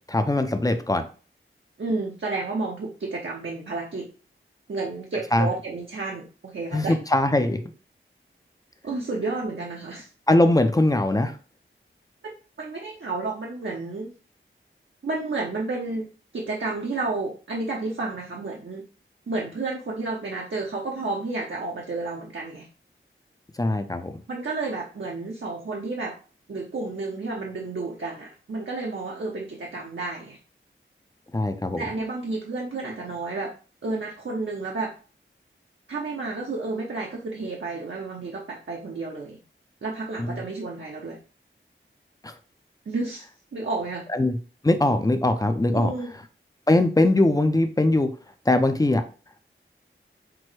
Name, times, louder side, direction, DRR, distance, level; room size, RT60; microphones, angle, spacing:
voice 1, 0.1-1.0 5.3-5.5 6.7-7.6 10.3-11.3 23.6-24.2 31.3-31.8 40.2-40.4 42.2-42.3 44.1-44.4 44.6-45.9 46.7-48.1 48.5-49.0, left 1 dB, 15° left, 8 dB, 0.5 m, -21 dB
voice 2, 1.8-4.1 4.7-6.9 8.8-10.1 12.6-14.1 15.0-16.1 16.3-18.8 19.3-22.7 24.3-26.1 26.5-30.4 31.8-33.5 33.8-34.9 35.9-39.4 39.8-41.2 42.9-43.3 43.5-44.1 45.7-46.1, right 3 dB, 65° right, -1 dB, 0.8 m, -31 dB
6.0 x 2.1 x 3.1 m, 0.37 s
wide cardioid pair, 80°, 21 cm